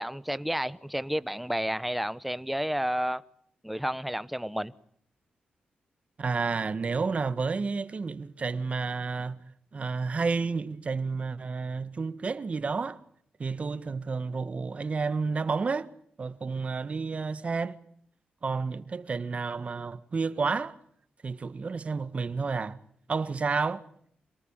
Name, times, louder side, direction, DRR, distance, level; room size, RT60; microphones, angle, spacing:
voice 1, 0.0-3.2 3.6-4.7, equal, 5° right, 1.0 m, -31 dB
voice 2, 6.2-9.4 9.7-13.0 13.4-15.9 16.2-17.8 18.4-20.7 21.2-22.8 23.1-23.8, right 4 dB, 45° right, 1.5 m, -30 dB
26.5 x 19.0 x 8.9 m
cardioid pair, 95°, 3 cm